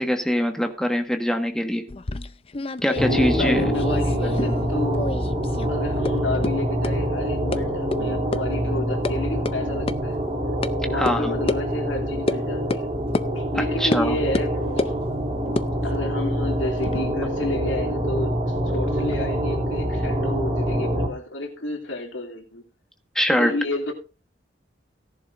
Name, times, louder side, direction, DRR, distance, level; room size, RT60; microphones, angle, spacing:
voice 1, 0.0-1.8 2.8-3.7 10.9-11.4 13.5-14.2 23.1-23.5, equal, 5° left, 1.4 m, -23 dB
sound 1, 1.9-4.7 4.9-5.7 6.0-6.1 6.4-6.5 6.8-6.9 7.5-7.6 7.9-8.0 8.3-8.4 8.7-9.1 9.5-9.6 9.9-10.0 10.6-10.7 11.1-11.2 11.5-11.6 12.3-12.4 12.7-12.8 13.1-13.3 13.9-14.0 14.3-15.0 15.5-17.0, left 2 dB, 30° left, 0.5 m, -28 dB
sound 2, 2.9-21.1, equal, 30° right, 2.9 m, -25 dB
voice 2, 3.1-5.1 5.7-10.2 10.8-12.9 13.3-14.8 15.8-22.7 23.3-23.9, left 1 dB, 85° left, 2.9 m, -30 dB
17.0 x 11.0 x 2.6 m
head